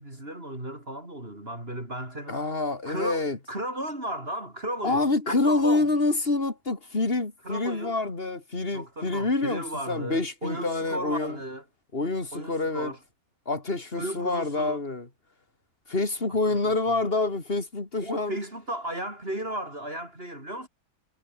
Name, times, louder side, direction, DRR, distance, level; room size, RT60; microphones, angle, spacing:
voice 1, 0.0-2.5 2.8-5.9 7.4-8.0 8.7-11.6 12.3-13.0 13.9-14.8 16.5-17.0 18.0-20.7, right 1 dB, 40° right, 6.5 m, -35 dB
voice 2, 2.3-3.4 4.8-11.4 11.9-12.9 13.5-15.1 15.9-18.4, left 3 dB, 40° left, 3.7 m, -27 dB
omnidirectional pair, 1.6 m